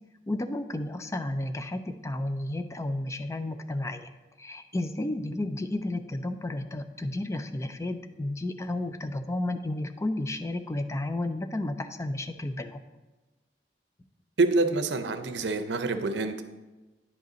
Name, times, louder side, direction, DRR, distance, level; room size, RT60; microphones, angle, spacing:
voice 1, 0.3-4.1 4.4-12.8, left 1 dB, 15° left, 9 dB, 0.4 m, -32 dB
voice 2, 14.4-16.4, right 3 dB, 85° right, 9 dB, 0.6 m, -26 dB
9.8 x 5.3 x 4.0 m, 1.2 s
head